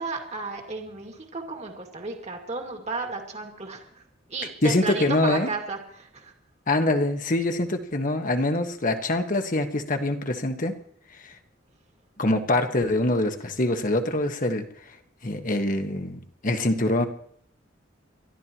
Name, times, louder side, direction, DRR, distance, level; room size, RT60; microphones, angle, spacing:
voice 1, 0.0-3.9 4.3-6.3, right 3 dB, 35° right, 2 dB, 2.1 m, -33 dB
voice 2, 4.6-5.5 6.7-10.7 11.2-11.3 12.2-14.7 15.2-17.0, left 1 dB, 40° left, 6 dB, 1.3 m, -24 dB
29.5 x 13.0 x 3.0 m, 0.63 s
head